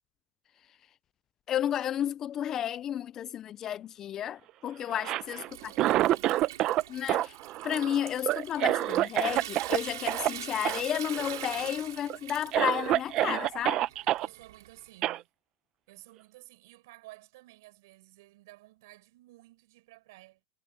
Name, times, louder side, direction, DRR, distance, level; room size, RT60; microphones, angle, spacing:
voice 1, 1.5-5.4 6.9-7.4 7.6-13.8, left 10 dB, 20° left, 0.3 m, -32 dB
voice 2, 4.8-6.4 14.2-15.3 15.9-20.4, right 19 dB, 55° right, 5.1 m, -54 dB
Cough, 4.9-6.8 7.1-9.8 10.1-10.3 10.6-10.8 11.1-11.6 12.1-12.2 12.5-14.3 15.0-15.2, right 14 dB, 30° right, 0.6 m, -27 dB
Water tap faucet / Sink (filling or washing) / Trickle dribble, 5.1-15.0, right 13 dB, 80° right, 5.2 m, -44 dB
supercardioid pair, 170°, 2 cm